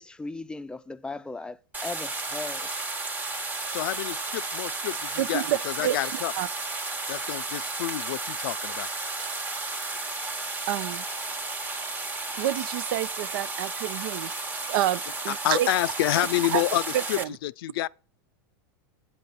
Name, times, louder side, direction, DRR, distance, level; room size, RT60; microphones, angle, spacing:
voice 1, 0.0-1.6 1.8-2.7, left 3 dB, 5° left, 0.5 m, -37 dB
sound 1, 1.7-17.2, right 3 dB, 15° right, 1.0 m, -33 dB
voice 2, 3.7-6.3 7.1-8.9 15.4-17.9, left 16 dB, 75° left, 0.4 m, -28 dB
voice 3, 5.2-6.5 10.7-11.0 12.4-15.7 16.5-16.6 16.9-17.3, right 13 dB, 70° right, 0.4 m, -29 dB
8.7 x 5.3 x 5.7 m
hypercardioid pair, 115°, 12 cm